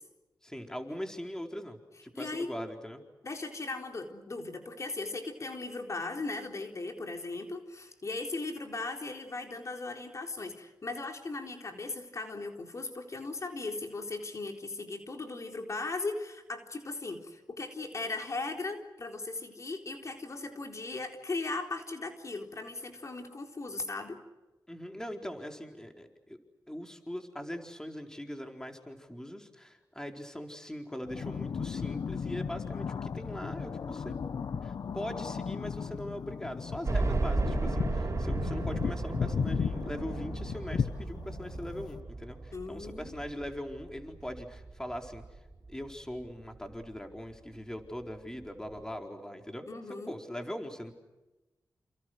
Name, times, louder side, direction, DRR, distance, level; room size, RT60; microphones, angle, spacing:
voice 1, 0.4-3.0 24.7-26.4 26.7-34.2 34.6-45.4 45.7-50.9, equal, 10° left, 3 dB, 4.3 m, -41 dB
voice 2, 2.2-2.5 3.2-24.2 42.5-43.2 49.7-50.2, left 3 dB, 45° left, 3 dB, 4.0 m, -38 dB
sound 1, 31.0-42.0, left 6 dB, 70° left, 0.9 m, -35 dB
sound 2, 36.9-45.8 46.2-46.3 46.7-46.8 48.0-48.1 48.4-48.5, right 3 dB, 45° right, 5.9 m, -35 dB
30.0 x 29.0 x 6.4 m, 1.1 s
cardioid pair, 80°, 7 cm